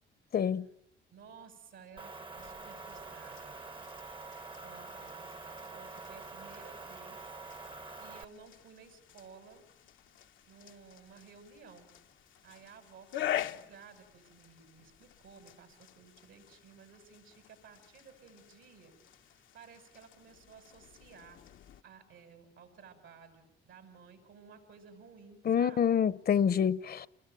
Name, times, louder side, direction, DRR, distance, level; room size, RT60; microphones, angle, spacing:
voice 1, 0.3-0.7 25.4-27.1, left 8 dB, 50° left, 1.0 m, -27 dB
voice 2, 1.1-3.6 4.6-7.3 7.9-9.6 10.5-11.9 12.4-18.9 19.2-21.4 21.8-26.1, right 6 dB, 75° right, 6.6 m, -55 dB
Motor vehicle (road) / Engine, 2.0-8.2, right 3 dB, 25° right, 1.1 m, -46 dB
sound 1, 2.4-21.8, left 12 dB, 75° left, 1.0 m, -46 dB
30.0 x 21.5 x 9.2 m
cardioid pair, 90°, 20 cm